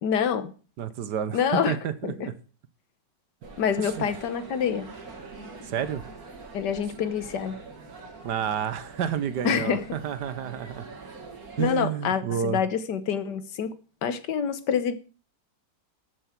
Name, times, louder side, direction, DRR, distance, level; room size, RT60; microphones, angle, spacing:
voice 1, 0.0-0.5 1.3-1.8 2.2-2.3 3.6-4.9 6.5-7.6 9.4-9.8 11.6-13.7 14.0-14.9, left 7 dB, 70° left, 1.6 m, -26 dB
voice 2, 0.8-2.3 3.8-4.1 5.6-6.0 8.2-10.9 11.6-12.6, right 8 dB, 70° right, 1.5 m, -30 dB
sound 1, 3.4-11.8, right 4 dB, 50° right, 2.4 m, -44 dB
13.5 x 6.9 x 5.9 m
omnidirectional pair, 2.0 m